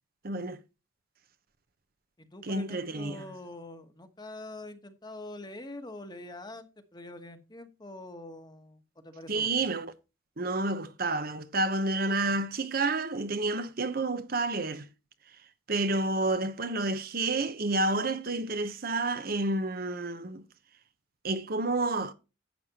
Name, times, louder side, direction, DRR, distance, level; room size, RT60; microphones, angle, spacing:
voice 1, 0.2-0.6 2.4-3.2 9.3-9.9 10.4-14.9 15.7-20.5 21.2-22.1, right 2 dB, 50° right, 0.9 m, -30 dB
voice 2, 2.2-9.6, left 2 dB, 20° left, 1.2 m, -45 dB
11.5 x 8.4 x 2.9 m
head